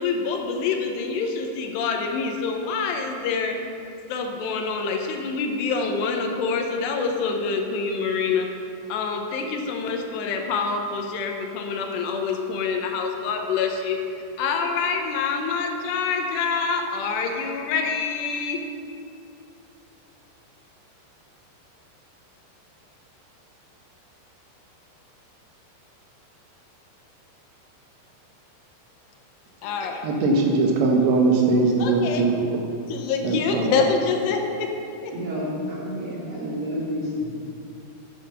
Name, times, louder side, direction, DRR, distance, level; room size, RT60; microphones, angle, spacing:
voice 1, 0.0-3.6 4.1-8.5 8.9-14.0 14.4-18.6 29.6-30.0 31.8-32.3 32.9-34.7 35.0-35.1, left 5 dB, 80° left, 3 dB, 3.0 m, -26 dB
voice 2, 30.0-32.6 33.2-33.8, right 3 dB, 75° right, 0 dB, 3.1 m, -21 dB
voice 3, 35.1-37.3, equal, 35° right, -7 dB, 2.7 m, -29 dB
9.9 x 8.6 x 6.7 m, 2.6 s
omnidirectional pair, 5.0 m